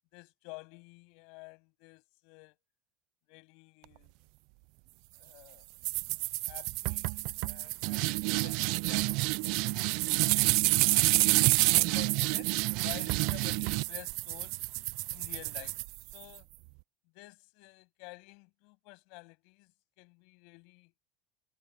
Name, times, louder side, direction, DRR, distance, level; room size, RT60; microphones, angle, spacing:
voice 1, 0.1-2.6 3.3-4.1 5.1-5.7 6.5-9.9 10.4-10.9 11.7-14.6 15.1-15.8 16.1-16.5 17.1-19.7 20.0-20.9, left 30 dB, 70° left, 7.7 m, -51 dB
sound 1, 5.8-16.4, right 26 dB, 70° right, 0.4 m, -28 dB
supercardioid pair, 130°, 0 cm